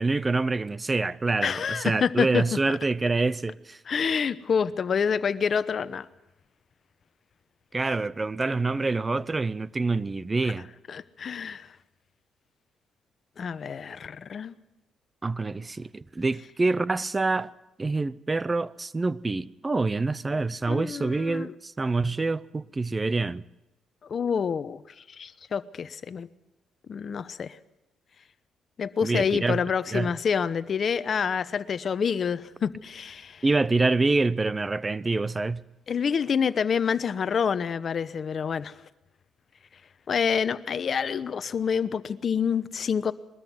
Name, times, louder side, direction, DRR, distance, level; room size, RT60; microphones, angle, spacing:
voice 1, 0.0-3.8 7.7-10.7 15.2-17.5 17.8-23.4 29.0-29.6 29.9-30.1 33.4-35.6, right 3 dB, 25° right, 0.7 m, -26 dB
voice 2, 1.4-2.4 3.9-6.1 10.4-10.5 10.9-11.7 13.4-14.6 20.7-21.5 24.1-24.8 25.1-26.3 26.9-27.6 28.8-33.4 35.9-38.7 40.1-43.1, left 6 dB, 50° left, 0.9 m, -27 dB
21.5 x 13.5 x 9.4 m
cardioid pair, 90°, 0 cm